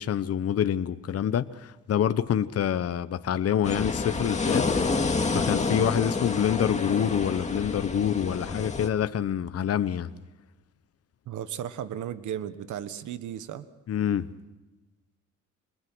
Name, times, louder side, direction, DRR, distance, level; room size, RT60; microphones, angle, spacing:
voice 1, 0.0-4.7 5.0-10.1 13.9-14.3, left 9 dB, 50° left, 1.0 m, -27 dB
sound 1, 3.6-8.9, left 4 dB, 25° left, 2.1 m, -28 dB
voice 2, 11.3-13.7, right 10 dB, 75° right, 1.3 m, -35 dB
27.5 x 21.0 x 6.2 m
cardioid pair, 90°, 30 cm